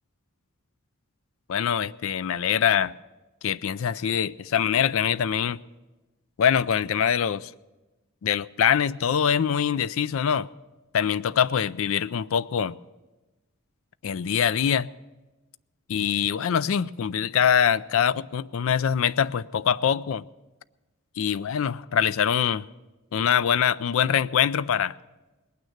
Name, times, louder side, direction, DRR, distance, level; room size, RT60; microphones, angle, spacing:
voice 1, 1.5-2.9 3.4-5.6 6.4-7.5 8.2-10.5 10.9-12.8 14.0-14.9 15.9-20.2 21.2-22.6 23.1-25.0, left 8 dB, 65° left, 0.4 m, -24 dB
19.5 x 9.3 x 6.5 m
head